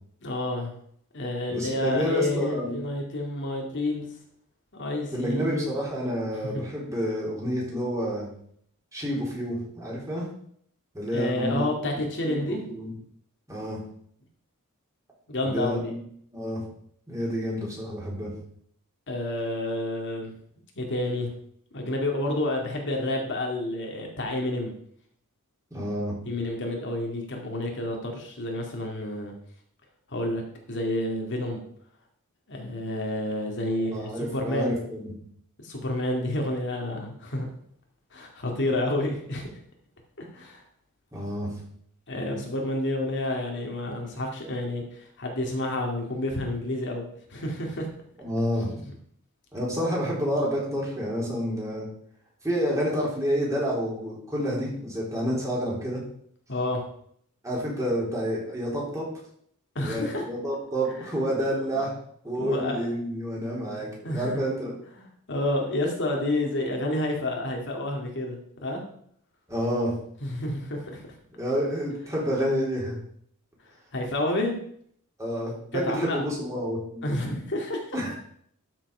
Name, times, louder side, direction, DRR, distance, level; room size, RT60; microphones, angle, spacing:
voice 1, 0.2-0.8 1.1-4.1 4.7-5.7 6.5-6.7 11.1-12.7 15.3-15.9 19.1-20.3 20.8-21.3 21.7-24.7 26.2-29.3 30.1-30.4 30.7-31.6 32.5-34.8 35.6-37.5 38.1-39.5 40.2-40.6 42.1-47.0 47.3-47.9 48.8-48.9 56.5-56.8 59.7-60.2 61.4-61.8 62.4-62.9 64.0-64.4 65.0-68.8 70.2-71.2 73.9-74.5 75.7-76.2 77.0-78.0, left 1 dB, 55° left, 1 dB, 2.3 m, -29 dB
voice 2, 1.5-2.7 5.1-8.3 8.9-10.3 10.9-11.7 11.9-12.9 13.5-13.8 15.4-16.0 16.3-16.6 17.1-18.3 25.7-26.2 33.8-35.1 41.1-41.5 48.2-48.7 49.5-51.9 52.4-56.0 57.4-59.0 59.8-61.9 62.2-64.7 69.5-69.9 71.3-72.9 75.2-77.0 77.9-78.2, equal, 15° right, -4 dB, 4.1 m, -29 dB
12.5 x 6.1 x 5.5 m, 0.66 s
head